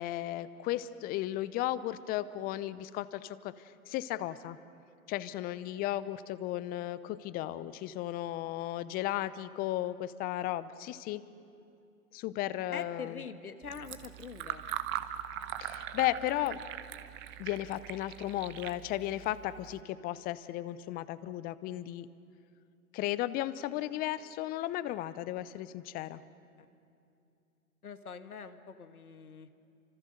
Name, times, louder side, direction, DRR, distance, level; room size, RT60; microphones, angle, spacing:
voice 1, 0.0-4.6 5.1-11.2 12.1-13.2 15.6-16.6 17.4-22.1 22.9-26.2, left 14 dB, 20° left, 16 dB, 0.7 m, -35 dB
voice 2, 12.7-14.6 27.8-29.5, left 6 dB, 80° left, 9 dB, 1.6 m, -43 dB
Fill (with liquid), 13.6-19.8, right 12 dB, 25° right, 1.1 m, -41 dB
29.5 x 26.0 x 6.6 m, 2.6 s
figure-of-eight pair, 115°, 43 cm